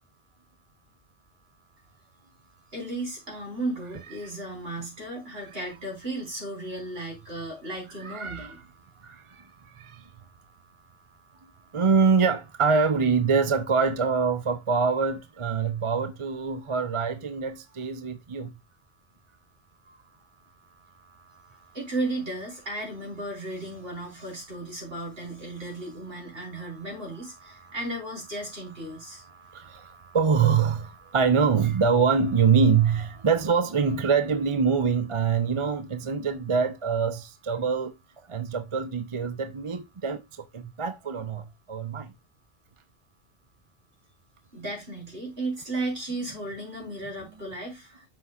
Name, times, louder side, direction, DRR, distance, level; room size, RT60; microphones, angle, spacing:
voice 1, 2.7-8.6 21.7-29.2 44.5-48.0, right 2 dB, 55° right, 4.0 m, -35 dB
voice 2, 8.1-8.5 9.0-9.2 9.8-10.0 11.7-18.5 29.3-37.9 38.3-40.2 40.5-42.1, right 5 dB, 35° right, 0.6 m, -24 dB
9.7 x 6.3 x 2.4 m
omnidirectional pair, 1.2 m